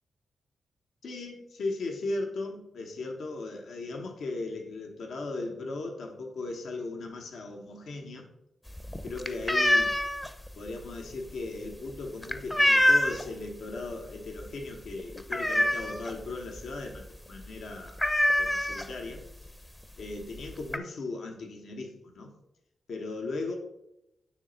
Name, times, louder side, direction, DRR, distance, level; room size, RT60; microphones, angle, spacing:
voice 1, 1.0-8.3 9.0-10.0 10.6-18.0 18.4-19.2 20.0-22.3 22.9-23.6, left 3 dB, 75° left, 2 dB, 1.0 m, -37 dB
sound 1, 8.7-13.4 13.8-14.1 14.4-14.5 14.8-16.2 16.6-16.7 16.9-17.2 17.4-17.5 18.0-19.2 20.0-20.1 20.3-20.8, left 1 dB, 15° left, 0.6 m, -25 dB
9.7 x 3.3 x 3.9 m, 0.86 s
cardioid pair, 70°, 0 cm